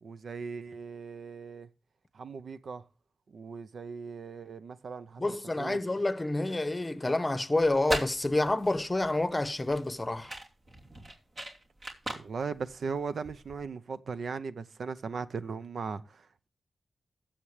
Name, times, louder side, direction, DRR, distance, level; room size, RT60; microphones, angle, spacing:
voice 1, 0.0-1.7 2.1-2.8 3.3-5.8 12.1-16.5, right 5 dB, 75° right, 0.6 m, -38 dB
voice 2, 5.2-10.3, left 2 dB, 20° left, 0.8 m, -28 dB
sound 1, 7.6-13.6, right 1 dB, 50° right, 2.8 m, -40 dB
16.0 x 7.3 x 3.2 m
wide cardioid pair, 80°, 0 cm